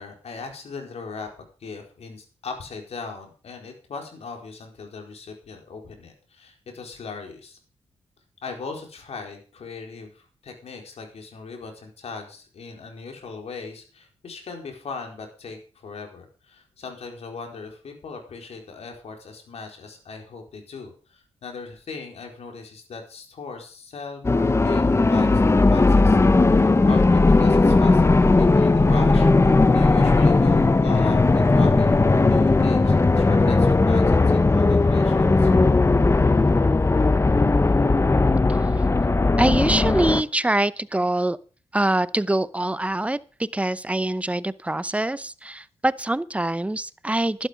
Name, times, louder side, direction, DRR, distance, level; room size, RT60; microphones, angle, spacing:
voice 1, 0.0-7.6 8.4-26.2 26.5-35.5, left 4 dB, 70° left, 3 dB, 4.3 m, -39 dB
sound 1, 24.2-40.2, left 3 dB, 25° left, 0.9 m, -17 dB
voice 2, 39.4-41.4 41.7-47.5, right 1 dB, 10° right, 18 dB, 0.7 m, -24 dB
12.0 x 11.5 x 5.1 m, 0.38 s
cardioid pair, 75°, 11 cm